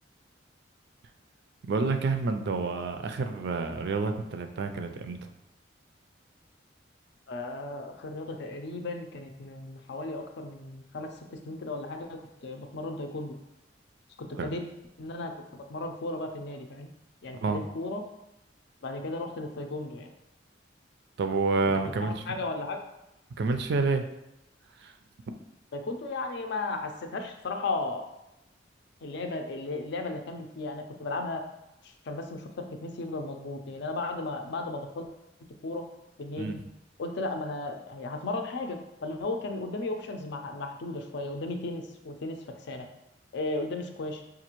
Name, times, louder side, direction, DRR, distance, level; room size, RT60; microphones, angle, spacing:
voice 1, 1.6-5.3 14.4-14.5 17.4-17.6 21.2-22.4 23.4-24.0 24.8-24.9 36.4-36.6, right 3 dB, 60° right, 7 dB, 0.4 m, -29 dB
voice 2, 7.3-13.4 14.2-14.6 15.0-16.9 17.2-18.0 18.8-20.1 22.0-22.8 25.7-28.0 29.0-31.4 31.8-35.1 35.6-35.8 36.2-36.6 37.0-42.9 43.3-44.2, left 2 dB, 65° left, 4 dB, 0.5 m, -35 dB
5.2 x 2.4 x 3.0 m, 0.90 s
head